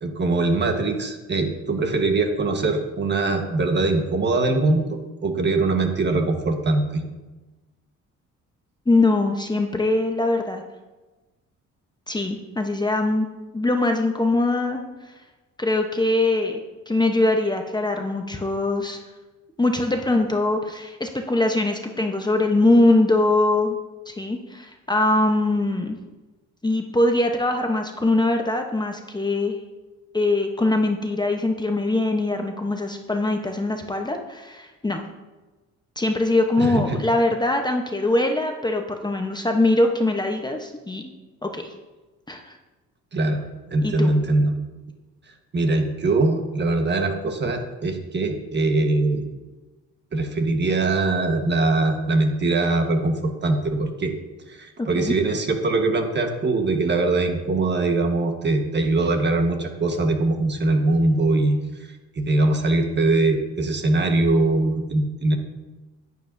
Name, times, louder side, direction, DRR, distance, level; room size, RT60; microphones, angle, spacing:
voice 1, 0.0-7.0 36.6-37.0 43.1-43.4 43.7-44.5 45.5-49.3 50.1-54.1 54.5-61.6 62.1-65.4, right 2 dB, 35° right, 4 dB, 1.3 m, -22 dB
voice 2, 8.9-10.6 12.1-13.3 13.5-14.8 15.6-19.0 19.6-23.8 24.1-26.0 26.6-29.6 30.1-35.0 36.0-41.1 41.4-41.7 42.3-42.6 43.8-44.1 54.8-55.1, left 2 dB, 15° left, 4 dB, 0.9 m, -22 dB
10.5 x 9.5 x 2.6 m, 1.2 s
cardioid pair, 90°, 30 cm